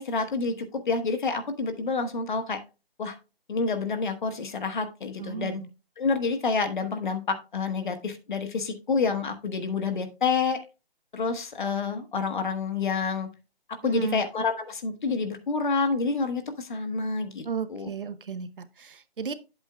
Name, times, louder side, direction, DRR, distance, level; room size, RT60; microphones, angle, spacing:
voice 1, 0.0-2.6 3.0-3.2 3.5-5.6 6.0-10.6 11.1-13.3 13.7-17.9, left 4 dB, 50° left, 1.2 m, -28 dB
voice 2, 5.2-5.7 13.8-14.2 17.4-19.3, right 6 dB, 60° right, 0.8 m, -34 dB
8.5 x 8.1 x 2.3 m
figure-of-eight pair, 160°, 30 cm